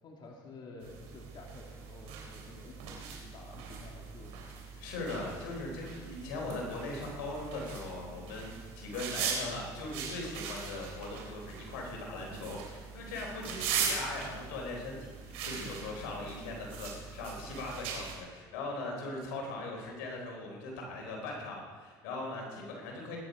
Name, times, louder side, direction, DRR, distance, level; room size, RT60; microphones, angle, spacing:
voice 1, 0.0-4.4, left 3 dB, 45° left, 0 dB, 2.6 m, -51 dB
sound 1, 0.8-18.1, right 6 dB, 75° right, 3.8 m, -40 dB
voice 2, 4.8-23.2, left 2 dB, 85° left, 0 dB, 4.0 m, -40 dB
20.5 x 10.0 x 5.1 m, 1.5 s
supercardioid pair, 90°, 10 cm